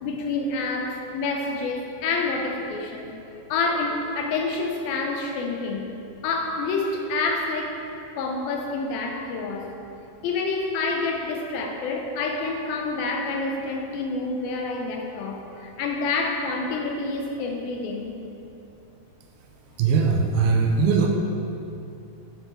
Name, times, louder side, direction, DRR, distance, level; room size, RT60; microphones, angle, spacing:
voice 1, 0.0-3.1 3.5-5.9 6.2-7.8 8.2-9.7 10.2-18.2, left 3 dB, 80° left, 1 dB, 2.4 m, -28 dB
voice 2, 19.8-21.1, right 5 dB, 80° right, 1 dB, 2.5 m, -20 dB
9.0 x 6.6 x 4.3 m, 2.8 s
omnidirectional pair, 4.5 m